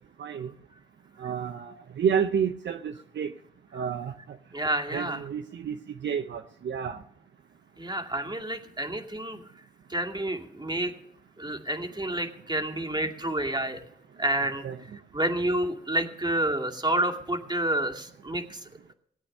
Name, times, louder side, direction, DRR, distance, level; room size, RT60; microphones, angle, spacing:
voice 1, 0.2-0.5 1.2-3.3 3.7-4.1 4.9-5.8 6.0-7.0 14.6-14.8, right 7 dB, 70° right, 8 dB, 0.7 m, -30 dB
voice 2, 4.5-5.2 7.8-9.4 9.9-10.9 11.4-13.8 14.2-14.6 15.1-18.6, right 1 dB, 20° right, 3 dB, 2.4 m, -29 dB
17.5 x 8.6 x 6.6 m, 0.69 s
supercardioid pair, 45°, 20 cm